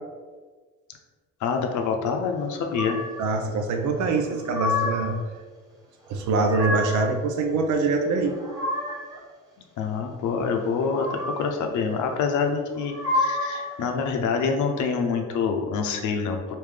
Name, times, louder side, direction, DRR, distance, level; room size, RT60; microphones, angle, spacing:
voice 1, 1.4-3.0 9.8-16.5, left 5 dB, 75° left, 4 dB, 0.6 m, -26 dB
sound 1, 2.7-3.3 4.1-5.2 6.1-7.1 8.1-9.2 10.7-11.6 12.7-13.7, left 2 dB, 10° right, 1.2 m, -29 dB
voice 2, 3.2-5.1 6.1-8.4, right 3 dB, 80° right, 5 dB, 0.6 m, -24 dB
3.2 x 2.6 x 3.6 m, 1.4 s
cardioid pair, 90°, 30 cm